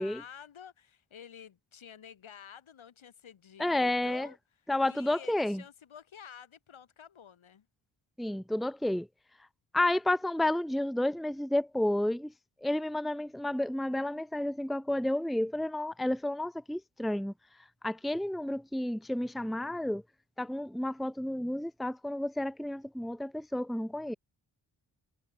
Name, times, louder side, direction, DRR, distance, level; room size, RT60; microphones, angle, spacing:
voice 1, 0.0-4.4 4.8-7.7, left 8 dB, 75° left, 4.2 m, -50 dB
voice 2, 3.6-4.3 4.7-5.6 8.2-9.1 9.7-12.3 12.6-17.3 17.8-20.0 20.4-24.2, left 1 dB, ahead, 0.9 m, -31 dB
cardioid pair, 50°, 49 cm